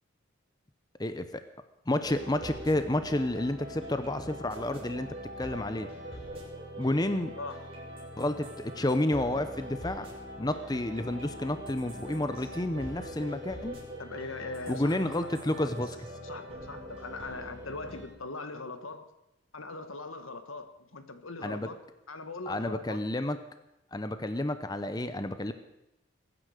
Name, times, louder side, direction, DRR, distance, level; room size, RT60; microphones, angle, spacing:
voice 1, 1.0-1.4 1.9-5.1 5.4-5.9 6.8-7.3 8.2-10.1 10.4-13.8 14.7-16.0 21.4-21.7 22.5-23.4 23.9-25.5, left 1 dB, 20° left, 10 dB, 0.7 m, -30 dB
sound 1, 2.0-18.1, equal, 30° right, 5.2 m, -43 dB
voice 2, 14.0-15.0 15.6-15.7 16.2-19.1 19.5-21.8 22.1-23.0, left 3 dB, 85° left, 9 dB, 1.5 m, -40 dB
22.0 x 9.9 x 6.5 m, 0.92 s
head